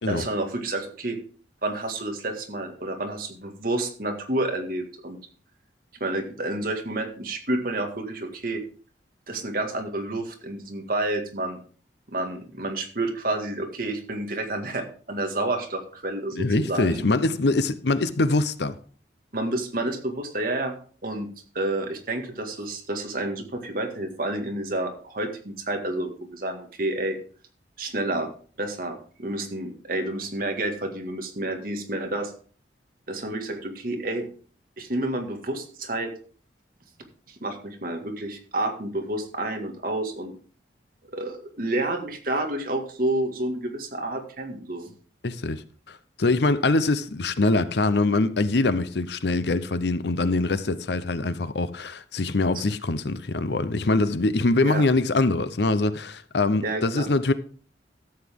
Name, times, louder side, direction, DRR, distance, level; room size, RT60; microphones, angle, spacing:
voice 1, 0.0-1.2 1.6-5.2 6.0-8.6 9.3-11.6 12.1-17.0 19.3-20.7 21.0-21.3 21.5-27.2 27.8-28.3 28.6-32.3 33.1-34.3 34.8-36.1 37.3-40.3 41.1-44.9 54.6-54.8 56.6-57.1, right 2 dB, 50° right, 1.9 m, -29 dB
voice 2, 16.4-18.8 45.2-57.3, left 2 dB, 65° left, 0.7 m, -23 dB
13.0 x 8.1 x 3.6 m
head